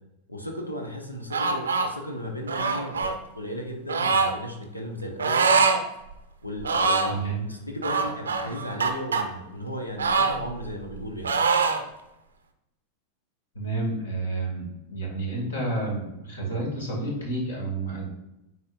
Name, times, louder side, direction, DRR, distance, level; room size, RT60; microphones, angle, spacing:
voice 1, 0.3-5.6 6.4-11.3, equal, 85° left, 2 dB, 1.0 m, -35 dB
sound 1, 1.3-1.9 2.5-3.1 3.9-4.3 5.2-5.8 6.1-6.2 6.6-7.2 7.8-9.2 10.0-11.0 11.2-11.8, right 4 dB, 70° right, 0.6 m, -23 dB
voice 2, 7.1-7.4 13.6-18.1, right 2 dB, 70° left, -2 dB, 2.1 m, -30 dB
9.4 x 4.2 x 2.5 m, 0.91 s
figure-of-eight pair, 90°, 0 cm